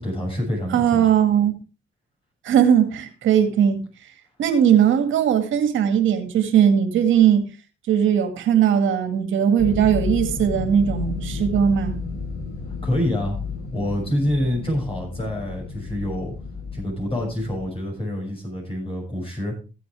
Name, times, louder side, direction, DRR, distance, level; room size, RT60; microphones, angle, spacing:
voice 1, 0.0-1.0 12.8-13.4 13.7-16.3 16.7-19.5, left 1 dB, 30° left, 6.8 m, -26 dB
voice 2, 0.7-1.5 2.4-3.8 4.4-7.5 7.9-12.0, right 9 dB, 75° right, 2.1 m, -19 dB
sound 1, 9.6-17.7, left 4 dB, 60° left, 7.4 m, -32 dB
15.5 x 8.6 x 3.5 m
cardioid pair, 90°, 20 cm